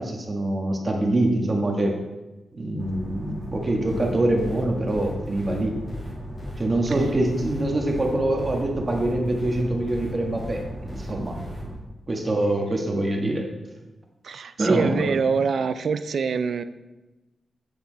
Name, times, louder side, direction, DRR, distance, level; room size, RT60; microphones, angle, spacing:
voice 1, 0.0-2.0 2.5-5.8 6.6-10.6 10.9-11.4 12.1-13.5 14.6-15.2, right 1 dB, 30° right, 1 dB, 1.4 m, -24 dB
sound 1, 2.8-11.8, right 1 dB, 5° right, 2.3 m, -37 dB
Electro Metrómico, 3.9-11.6, left 2 dB, 30° left, 2.9 m, -41 dB
voice 2, 14.2-16.6, right 5 dB, 65° right, 12 dB, 0.4 m, -24 dB
8.2 x 6.9 x 3.9 m, 1.1 s
wide cardioid pair, 110°, 0 cm